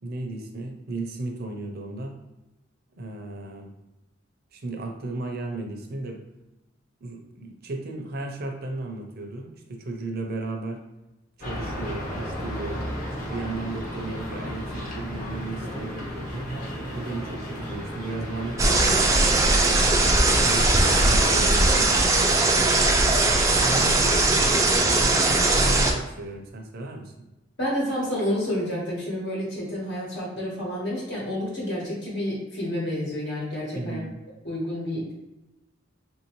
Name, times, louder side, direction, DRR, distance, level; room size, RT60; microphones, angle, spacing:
voice 1, 0.0-2.2 3.0-3.7 4.5-6.2 7.0-10.8 11.4-12.8 13.3-16.5 16.9-19.5 20.4-22.9 23.6-24.6 25.0-27.1 33.7-34.2, right 2 dB, 55° right, 3 dB, 0.6 m, -35 dB
sound 1, 11.4-21.4, equal, 45° left, 1.0 m, -34 dB
sound 2, 18.6-25.9, right 2 dB, 15° right, 0.4 m, -20 dB
voice 2, 27.6-34.0 34.4-35.1, left 1 dB, 65° left, -5 dB, 1.2 m, -29 dB
3.5 x 2.7 x 3.0 m, 1.0 s
head